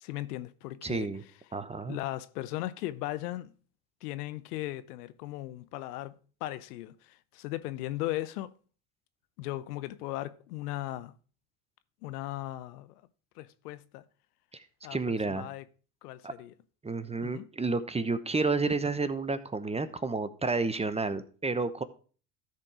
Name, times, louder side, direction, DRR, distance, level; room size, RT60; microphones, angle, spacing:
voice 1, 0.0-1.1 1.9-3.5 4.0-6.2 6.4-8.5 9.4-11.1 12.0-12.9 13.4-14.0 14.8-15.0 15.3-15.6 16.0-16.5 17.2-17.5, left 16 dB, 80° left, 0.8 m, -37 dB
voice 2, 0.8-1.2 1.5-2.0 14.9-15.5 16.2-16.3 16.8-21.8, right 3 dB, 15° right, 0.9 m, -30 dB
13.5 x 4.5 x 4.9 m
hypercardioid pair, 75°, 46 cm